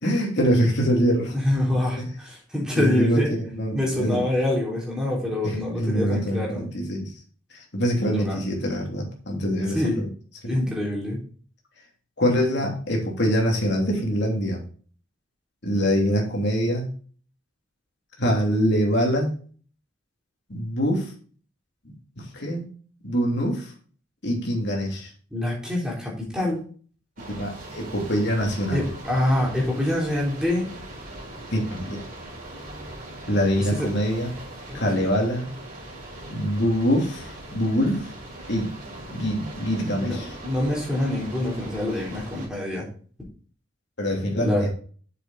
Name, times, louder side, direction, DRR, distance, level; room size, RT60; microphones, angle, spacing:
voice 1, 0.0-1.4 2.0-2.1 2.8-3.2 3.5-4.3 5.4-7.0 7.5-10.1 10.4-10.6 12.2-14.6 15.6-16.9 18.2-19.3 20.5-21.1 21.8-22.6 23.0-23.7 24.2-25.1 27.4-28.8 31.5-32.0 33.3-34.3 34.7-35.5 36.2-38.1 38.5-38.7 39.1-40.3 44.0-44.7, equal, 55° left, 0 dB, 3.0 m, -24 dB
voice 2, 1.3-3.3 3.7-6.6 8.0-8.4 9.7-10.0 10.5-11.2 25.3-26.6 28.7-30.7 33.5-33.9 34.7-35.0 40.0-40.2 40.4-42.9 44.4-44.7, left 1 dB, 5° right, -4 dB, 3.6 m, -25 dB
sound 1, 27.2-42.5, right 1 dB, 45° right, 4.4 m, -40 dB
7.6 x 7.2 x 4.2 m, 0.43 s
head